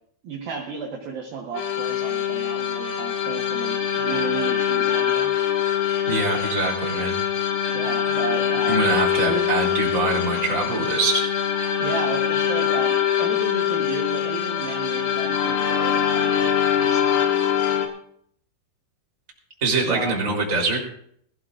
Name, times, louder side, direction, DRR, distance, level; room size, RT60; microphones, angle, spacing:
voice 1, 0.2-5.3 7.7-8.8 9.2-9.5 11.8-16.5 16.8-17.2 19.8-20.2, right 4 dB, 60° right, -1 dB, 2.8 m, -33 dB
sound 1, 1.5-17.9, left 9 dB, 90° left, 4.0 m, -23 dB
voice 2, 6.1-7.2 8.7-11.2 19.6-20.8, right 3 dB, 20° right, -2 dB, 3.3 m, -24 dB
21.0 x 15.0 x 2.6 m, 0.65 s
omnidirectional pair, 5.5 m